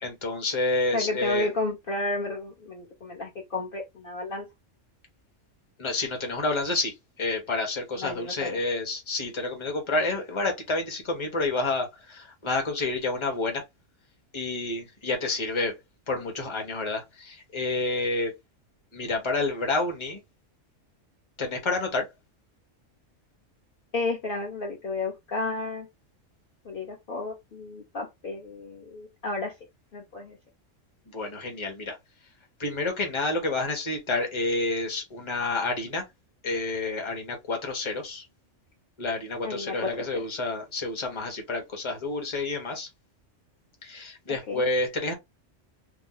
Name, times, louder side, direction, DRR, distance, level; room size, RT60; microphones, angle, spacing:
voice 1, 0.0-1.5 5.8-13.6 14.3-15.8 16.1-18.3 18.9-20.2 21.4-22.1 31.1-32.0 32.6-36.0 36.4-38.3 39.0-42.9 43.8-45.1, left 2 dB, 25° left, 1.0 m, -29 dB
voice 2, 0.9-4.4 8.0-8.6 23.9-25.9 26.6-29.5 29.9-30.4 39.4-40.2 44.5-44.6, left 2 dB, 50° left, 0.9 m, -32 dB
3.1 x 2.0 x 3.8 m
omnidirectional pair, 1.3 m